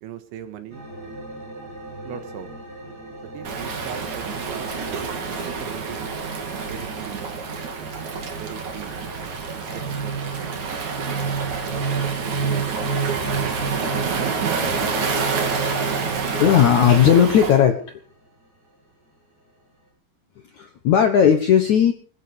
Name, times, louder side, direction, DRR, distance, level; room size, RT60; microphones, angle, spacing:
voice 1, 0.0-0.9 2.0-2.5 3.3-6.0 6.6-7.3 8.3-9.0 9.5-10.6 11.6-13.0, right 9 dB, 85° right, 9 dB, 4.0 m, -39 dB
sound 1, 0.7-19.9, right 1 dB, 20° right, 7.4 m, -44 dB
Waves surf, 3.4-17.6, right 5 dB, 45° right, 3.6 m, -28 dB
sound 2, 9.7-17.6, right 4 dB, 10° left, 1.9 m, -30 dB
voice 2, 16.4-18.0 20.5-21.9, left 8 dB, 70° left, 7 dB, 1.8 m, -16 dB
20.5 x 13.0 x 5.2 m, 0.42 s
omnidirectional pair, 5.2 m